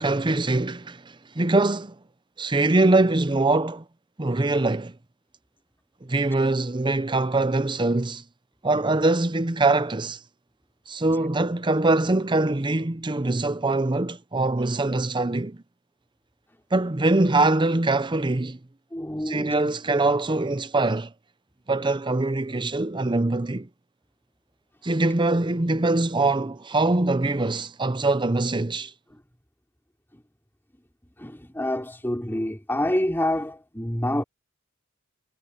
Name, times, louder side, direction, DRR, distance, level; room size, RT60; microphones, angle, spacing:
voice 1, 0.0-2.0 2.4-3.8 4.2-4.9 6.0-8.2 8.6-10.2 10.9-15.6 16.7-18.6 19.3-21.1 21.7-23.7 24.8-28.9, right 2 dB, 20° right, 0.7 m, -23 dB
voice 2, 18.9-19.6 29.1-29.2 31.2-34.2, left 1 dB, 10° left, 4.2 m, -27 dB
head